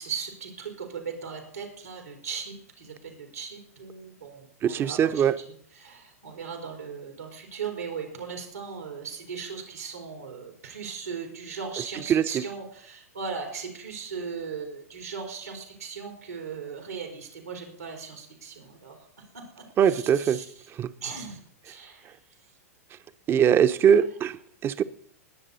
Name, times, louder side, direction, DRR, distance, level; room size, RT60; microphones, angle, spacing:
voice 1, 0.0-5.3 5.8-19.0 19.3-20.4 21.0-21.4 21.6-22.1, right 6 dB, 90° right, 3.9 m, -38 dB
voice 2, 4.6-5.4 12.1-12.4 19.8-20.4 20.7-20.9 23.3-24.8, right 8 dB, 30° right, 0.8 m, -22 dB
21.0 x 7.4 x 4.1 m
hypercardioid pair, 105°, 8 cm